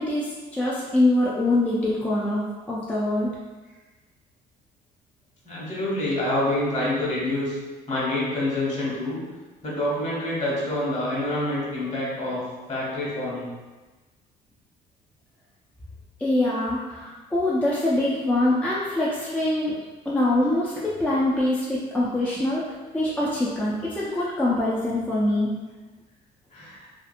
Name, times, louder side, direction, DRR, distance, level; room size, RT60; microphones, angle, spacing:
voice 1, 0.0-3.3 16.2-19.7 20.1-25.5, left 1 dB, 10° left, -6 dB, 0.4 m, -24 dB
voice 2, 5.4-7.6 7.9-9.2 9.6-13.5 24.1-24.2 26.5-26.9, left 1 dB, 45° left, -6 dB, 1.2 m, -27 dB
2.8 x 2.3 x 2.4 m, 1.2 s
cardioid pair, 110°, 17 cm